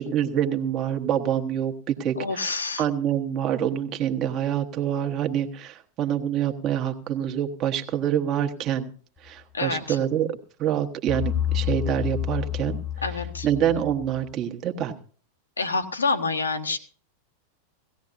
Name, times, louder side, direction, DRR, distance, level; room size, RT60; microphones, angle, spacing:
voice 1, 0.0-8.9 9.2-12.8 13.4-14.9, right 10 dB, 35° right, 4 dB, 1.3 m, -26 dB
voice 2, 2.2-2.8 9.5-10.0 13.0-13.5 15.6-16.8, left 3 dB, 75° left, 7 dB, 1.4 m, -27 dB
sound 1, 11.1-14.2, left 11 dB, 10° left, 0.9 m, -29 dB
18.0 x 15.5 x 2.6 m, 0.42 s
figure-of-eight pair, 90°, 0 cm